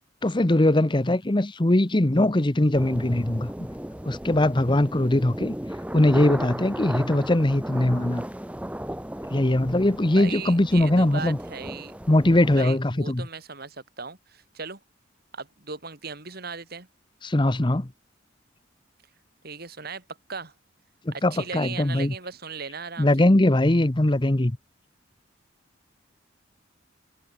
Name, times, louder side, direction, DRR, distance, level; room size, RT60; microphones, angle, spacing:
voice 1, 0.2-3.5 4.1-5.5 5.9-8.2 9.3-11.4 12.1-13.3 17.2-17.9 21.1-22.1 23.0-24.6, left 1 dB, 25° left, 0.9 m, -21 dB
sound 1, 2.7-12.6, equal, 5° right, 1.2 m, -35 dB
voice 2, 10.1-11.9 12.6-14.8 15.3-16.9 19.4-20.0 20.3-20.5 21.1-23.3, right 5 dB, 50° right, 2.9 m, -37 dB
head